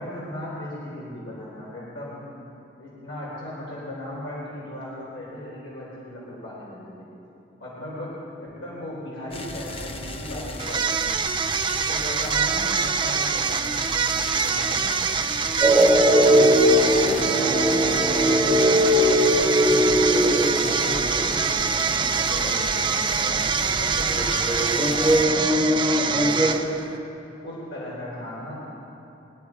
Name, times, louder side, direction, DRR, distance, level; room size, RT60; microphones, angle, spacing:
voice 1, 0.0-2.4 2.8-7.0 7.6-11.2 11.7-15.2 16.7-16.9 17.4-23.4 23.8-25.7 26.2-26.9 27.4-28.6 29.1-29.2, left 1 dB, 80° left, -8 dB, 4.0 m, -37 dB
sound 1, 9.3-25.3, left 2 dB, 30° left, 0.9 m, -36 dB
sound 2, 10.6-26.9, right 6 dB, 25° right, 0.5 m, -25 dB
sound 3, 15.6-22.9 23.2-26.6, equal, 5° right, 1.6 m, -21 dB
22.5 x 10.0 x 4.7 m, 2.9 s
head